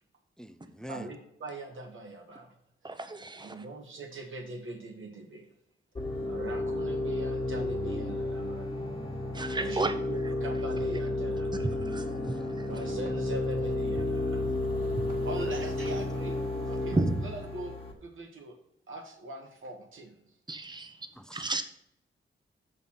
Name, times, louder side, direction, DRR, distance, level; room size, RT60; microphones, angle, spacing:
voice 1, 0.4-1.1 8.9-9.0 11.6-11.8 12.2-12.7 14.6-15.2 21.2-21.5, equal, 5° left, 0.3 m, -47 dB
voice 2, 0.9-2.5 3.4-5.5 6.3-8.8 9.1-9.2 9.6-11.7 12.6-14.4 14.8-14.9 15.2-16.4 16.7-17.0 17.2-18.6 18.9-20.1, right 2 dB, 80° right, 1.5 m, -42 dB
voice 3, 2.8-3.6 9.3-9.9 10.2-10.3 11.6-12.9 14.5-15.3 16.9-17.3 20.5-21.6, right 2 dB, 20° right, 0.7 m, -33 dB
sound 1, 5.9-17.9, left 2 dB, 30° left, 1.3 m, -32 dB
sound 2, 12.7-13.3 15.1-16.1, equal, 40° right, 1.8 m, -49 dB
6.4 x 5.5 x 5.6 m
wide cardioid pair, 160°, 20 cm